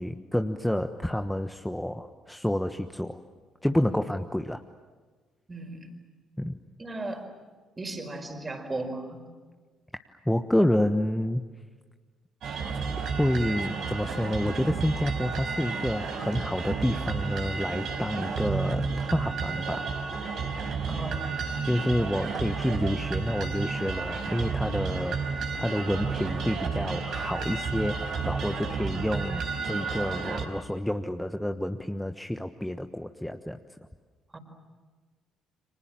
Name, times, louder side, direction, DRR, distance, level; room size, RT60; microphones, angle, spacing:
voice 1, 0.0-3.2 3.6-4.6 6.4-6.6 10.2-11.4 13.0-19.8 21.6-33.6, left 1 dB, 5° left, 6 dB, 1.3 m, -29 dB
voice 2, 5.5-5.9 6.8-7.2 7.8-9.2 20.9-21.3 34.3-34.4, right 2 dB, 25° right, 5 dB, 5.1 m, -36 dB
sound 1, 12.4-30.4, right 5 dB, 60° right, 4.1 m, -32 dB
29.5 x 25.5 x 7.6 m, 1.4 s
figure-of-eight pair, 50°, 0 cm